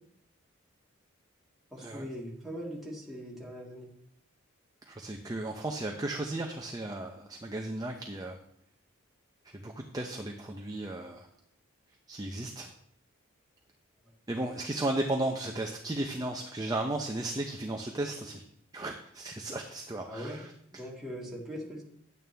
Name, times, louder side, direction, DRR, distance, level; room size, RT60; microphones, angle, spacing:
voice 1, 1.7-3.9 20.1-20.4 20.7-21.8, equal, ahead, -5 dB, 2.2 m, -40 dB
voice 2, 4.9-8.4 9.5-11.3 12.1-12.7 14.3-18.4 18.7-20.5, right 2 dB, 20° right, 2 dB, 0.6 m, -35 dB
10.5 x 9.0 x 3.4 m, 0.71 s
head